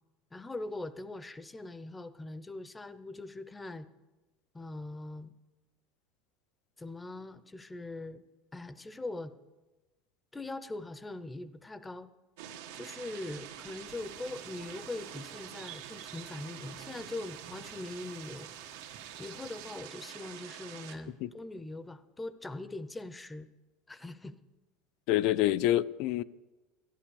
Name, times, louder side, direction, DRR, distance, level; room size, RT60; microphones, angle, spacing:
voice 1, 0.3-3.9 4.5-5.3 6.8-8.2 8.5-9.3 10.3-12.1 12.7-18.5 19.2-23.5 23.9-24.3, left 2 dB, 10° left, 0.6 m, -41 dB
sound 1, 12.4-20.9, right 10 dB, 85° right, 1.5 m, -46 dB
sound 2, 13.8-19.8, right 10 dB, 60° right, 1.8 m, -55 dB
voice 2, 25.1-26.2, left 14 dB, 60° left, 0.4 m, -27 dB
13.0 x 10.5 x 7.0 m
supercardioid pair, 145°, 0 cm